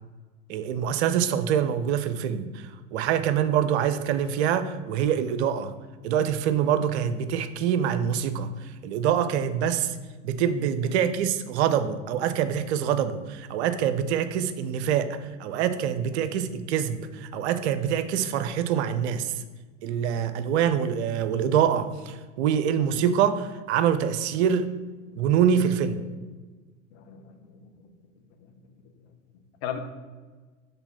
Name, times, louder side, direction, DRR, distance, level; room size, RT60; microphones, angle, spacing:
voice 1, 0.5-5.7 6.0-10.0 10.2-19.4 19.8-24.7 25.2-26.0, right 8 dB, 60° right, 11 dB, 0.6 m, -25 dB
voice 2, 20.1-20.5 25.1-25.2 26.9-27.9 28.4-28.5 29.6-29.8, left 9 dB, 55° left, 6 dB, 1.0 m, -39 dB
6.0 x 3.5 x 5.6 m, 1.4 s
figure-of-eight pair, 75°, 38 cm